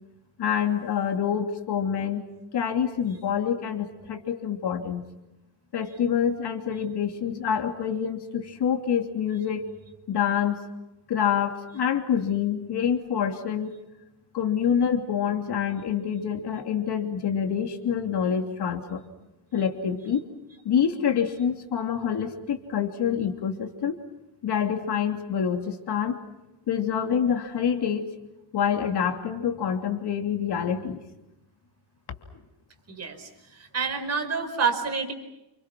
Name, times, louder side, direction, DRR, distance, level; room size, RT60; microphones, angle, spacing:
voice 1, 0.4-2.2 2.5-5.0 5.7-9.7 10.1-10.6 11.1-13.8 14.3-19.0 19.5-20.2 20.6-24.0 24.4-26.2 26.7-28.1 28.5-31.0, left 8 dB, 50° left, 5 dB, 3.1 m, -26 dB
voice 2, 32.9-35.1, right 5 dB, 30° right, 6 dB, 5.0 m, -28 dB
29.5 x 29.0 x 6.1 m, 0.94 s
cardioid pair, 140°, 50 cm